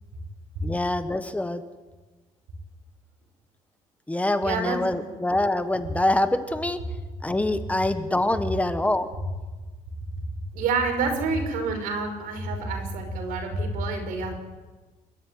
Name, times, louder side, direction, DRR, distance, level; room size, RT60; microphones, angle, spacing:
voice 1, 0.6-1.6 4.1-6.8 7.2-9.1, left 1 dB, 10° left, 10 dB, 1.4 m, -25 dB
voice 2, 4.4-5.0 10.5-14.3, right 3 dB, 85° right, 4 dB, 6.2 m, -28 dB
29.5 x 13.0 x 9.6 m, 1.3 s
cardioid pair, 120°, 14 cm